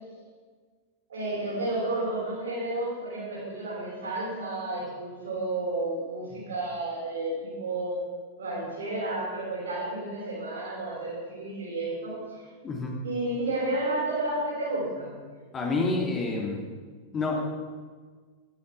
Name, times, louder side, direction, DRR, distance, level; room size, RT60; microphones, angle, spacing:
voice 1, 1.1-8.0 8.4-12.5 13.0-15.2, right 2 dB, 65° right, -7 dB, 6.0 m, -31 dB
voice 2, 15.5-16.7 17.1-17.4, left 3 dB, 25° left, -1 dB, 2.6 m, -28 dB
15.5 x 12.5 x 5.6 m, 1.5 s
figure-of-eight pair, 90°, 0 cm